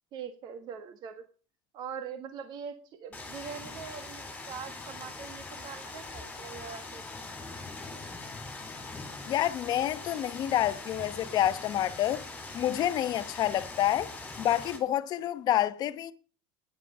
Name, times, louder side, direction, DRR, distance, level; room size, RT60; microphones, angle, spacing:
voice 1, 0.1-1.2 1.7-7.0, right 7 dB, 45° right, 1.6 m, -42 dB
sound 1, 3.1-14.8, left 3 dB, 10° left, 3.8 m, -42 dB
voice 2, 9.2-12.2 12.5-14.1 14.4-16.1, left 12 dB, 40° left, 0.9 m, -28 dB
11.0 x 10.0 x 6.7 m
cardioid pair, 160°, 11 cm